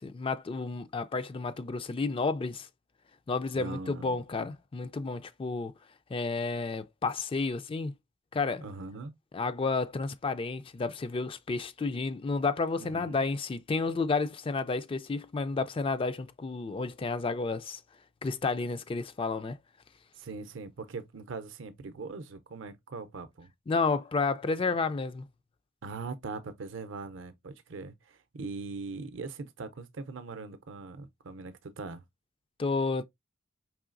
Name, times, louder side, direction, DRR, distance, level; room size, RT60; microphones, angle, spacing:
voice 1, 0.0-2.7 3.3-5.7 6.1-7.9 8.3-8.6 9.3-17.8 18.2-19.6 23.7-25.2 32.6-33.0, left 4 dB, 25° left, 0.3 m, -31 dB
voice 2, 3.5-4.2 8.6-9.1 12.8-13.2 20.2-23.5 25.8-32.0, right 3 dB, 65° right, 0.6 m, -41 dB
4.7 x 3.1 x 2.5 m
head